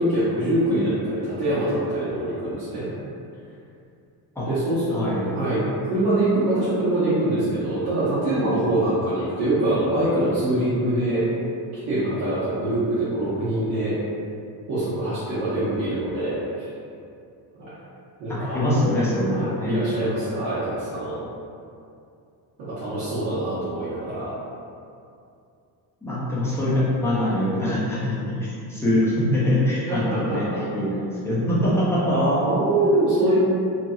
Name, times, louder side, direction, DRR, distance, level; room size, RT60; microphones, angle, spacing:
voice 1, 0.0-2.9 4.5-5.0 5.3-11.2 11.9-13.9 14.7-16.7 18.2-18.6 19.2-21.2 22.6-24.3 29.9-30.6 32.1-33.4, right 1 dB, 65° right, -12 dB, 1.0 m, -24 dB
voice 2, 4.9-5.3 18.3-19.8 26.0-30.5 30.7-32.0, left 1 dB, 5° left, -9 dB, 0.5 m, -23 dB
2.8 x 2.6 x 2.3 m, 2.5 s
cardioid pair, 155°, 39 cm